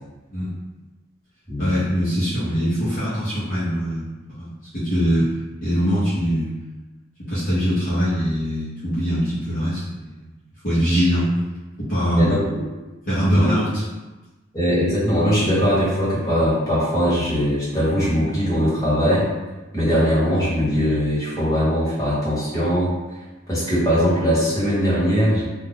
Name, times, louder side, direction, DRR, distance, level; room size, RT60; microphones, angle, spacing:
voice 1, 1.6-4.0 4.4-5.3 5.6-6.5 7.2-10.3 10.6-11.3 11.8-12.4 13.1-13.8, equal, 45° left, -11 dB, 0.9 m, -22 dB
voice 2, 12.1-12.6 13.3-13.5 14.5-19.2 19.7-22.9 23.5-25.4, equal, 15° left, -10 dB, 1.3 m, -20 dB
2.5 x 2.3 x 3.5 m, 1.1 s
head